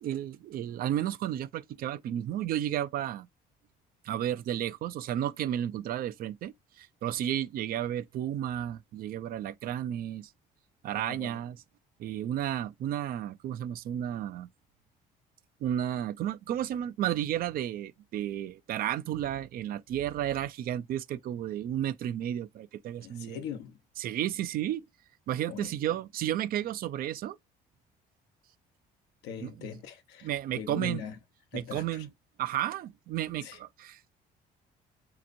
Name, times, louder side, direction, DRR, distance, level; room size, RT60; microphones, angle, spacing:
voice 1, 0.0-3.3 4.0-10.3 10.8-11.6 12.0-14.5 15.6-23.4 24.0-24.8 25.3-27.4 29.4-29.5 30.2-31.0 31.5-32.1 32.4-34.1, right 11 dB, 60° right, 0.4 m, -32 dB
voice 2, 10.9-11.4 23.0-23.8 25.5-25.7 29.2-31.2 31.5-32.1 33.4-33.6, left 6 dB, 85° left, 0.8 m, -41 dB
5.0 x 2.9 x 2.6 m
cardioid pair, 110°, 17 cm